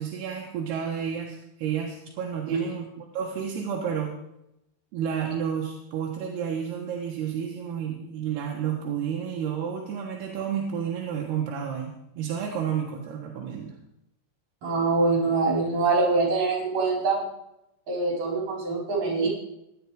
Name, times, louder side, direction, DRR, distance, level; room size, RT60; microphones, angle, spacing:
voice 1, 0.0-4.2 4.9-13.8, right 8 dB, 80° right, -1 dB, 3.5 m, -31 dB
voice 2, 14.6-17.2 17.9-19.3, right 3 dB, 55° right, -1 dB, 5.8 m, -24 dB
16.5 x 11.5 x 4.9 m, 0.85 s
omnidirectional pair, 4.6 m